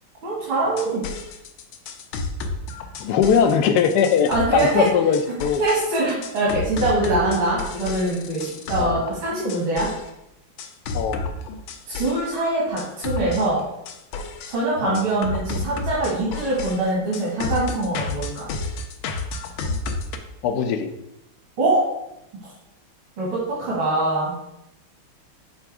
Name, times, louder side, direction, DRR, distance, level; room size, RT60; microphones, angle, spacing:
voice 1, 0.2-1.0 4.3-4.8 5.6-9.9 11.9-13.6 14.5-18.5 21.6-21.8 23.2-24.3, right 2 dB, 75° right, -6 dB, 2.7 m, -23 dB
sound 1, 0.6-10.1 10.6-12.3 12.8-14.6 14.9-20.2, left 3 dB, 85° left, 1.5 m, -31 dB
voice 2, 3.0-5.6 8.8-9.0 10.9-11.2 14.8-15.0 20.4-20.9, left 7 dB, 70° left, 7 dB, 1.0 m, -20 dB
7.2 x 3.4 x 4.7 m, 0.85 s
omnidirectional pair, 2.2 m